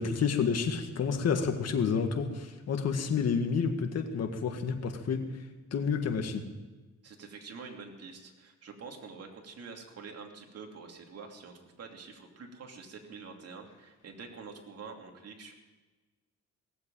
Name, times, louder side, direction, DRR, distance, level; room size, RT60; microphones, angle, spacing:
voice 1, 0.0-5.2 5.7-6.5, left 6 dB, 55° left, 5 dB, 1.8 m, -29 dB
voice 2, 7.0-15.5, right 4 dB, 55° right, 2 dB, 2.9 m, -46 dB
18.0 x 7.8 x 9.0 m, 1.2 s
cardioid pair, 90°, 30 cm